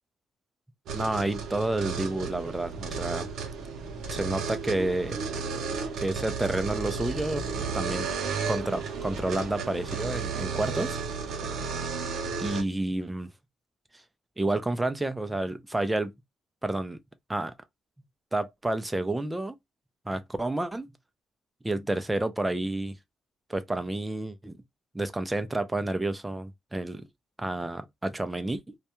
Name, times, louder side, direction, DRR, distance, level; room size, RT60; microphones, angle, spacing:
voice 1, 0.9-3.3 4.1-5.2 6.0-7.4 7.7-8.1 8.5-11.0 12.4-13.3 14.4-16.1 16.6-17.0 17.3-17.5 18.3-19.6 20.1-20.9 21.6-23.0 23.5-24.6 24.9-27.1 27.4-28.8, right 2 dB, 10° right, 0.4 m, -30 dB
sound 1, 0.9-12.6, right 5 dB, 75° right, 0.6 m, -33 dB
2.2 x 2.1 x 2.8 m
cardioid pair, 90°, 0 cm